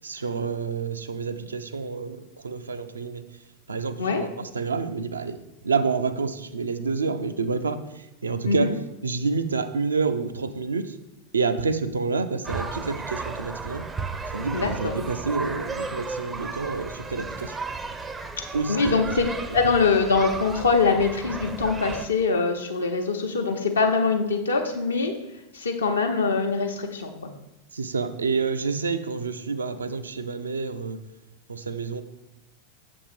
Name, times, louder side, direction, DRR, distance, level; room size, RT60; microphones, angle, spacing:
voice 1, 0.0-3.2 3.7-5.4 5.6-8.7 9.0-11.0 11.3-13.9 14.3-17.6 18.5-19.0 27.7-31.0 31.5-32.0, right 4 dB, 75° right, 9 dB, 0.4 m, -28 dB
sound 1, 12.4-22.1, right 4 dB, 15° right, 0.5 m, -34 dB
voice 2, 14.5-15.0 18.7-19.3 19.5-25.1 25.5-27.3, left 4 dB, 70° left, 3 dB, 0.8 m, -23 dB
7.0 x 3.5 x 5.0 m, 0.93 s
figure-of-eight pair, 90°, 0 cm